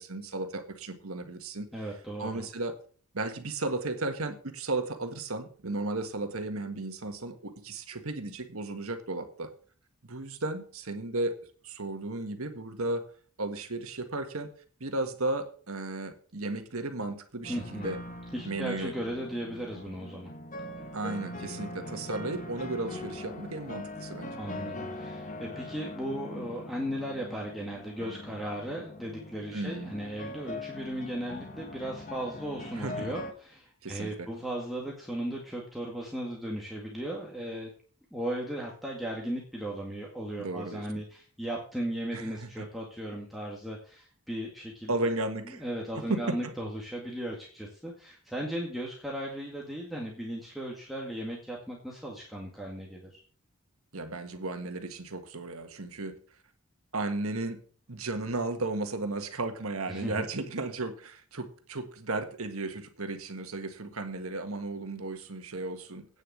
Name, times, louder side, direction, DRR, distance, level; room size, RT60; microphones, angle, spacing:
voice 1, 0.0-1.7 2.2-2.8 3.1-9.5 10.0-11.3 11.6-13.1 13.4-14.5 14.8-18.0 18.4-18.9 20.9-24.4 29.5-29.9 32.7-33.1 33.8-34.3 40.4-40.9 42.1-42.6 44.9-45.6 46.1-46.5 53.9-56.1 56.9-57.6 57.9-66.1, right 2 dB, 75° right, 6 dB, 1.6 m, -34 dB
voice 2, 1.7-2.5 17.5-17.9 18.3-20.3 24.4-37.7 38.1-44.9 45.6-53.2 59.9-60.3, right 1 dB, ahead, -4 dB, 2.0 m, -36 dB
sound 1, 17.4-33.3, left 1 dB, 35° left, 1.2 m, -42 dB
9.2 x 6.7 x 7.4 m, 0.43 s
head